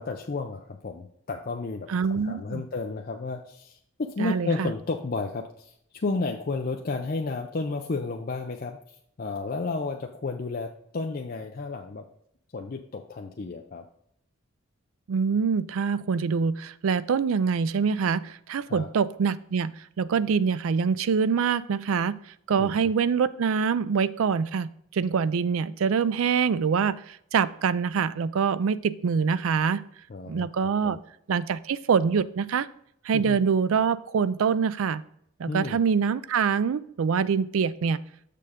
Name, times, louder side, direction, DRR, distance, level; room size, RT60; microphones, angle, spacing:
voice 1, 0.0-12.0 12.5-13.8 18.7-18.9 22.6-22.9 30.1-31.0 33.1-33.4 35.5-35.8, left 3 dB, 45° left, 2 dB, 0.5 m, -32 dB
voice 2, 1.9-2.6 4.2-4.7 15.1-22.2 22.5-29.8 30.3-31.0 31.3-32.7 33.0-35.0 35.4-38.0, right 6 dB, 75° right, 16 dB, 0.4 m, -25 dB
6.7 x 6.4 x 3.6 m, 0.70 s
head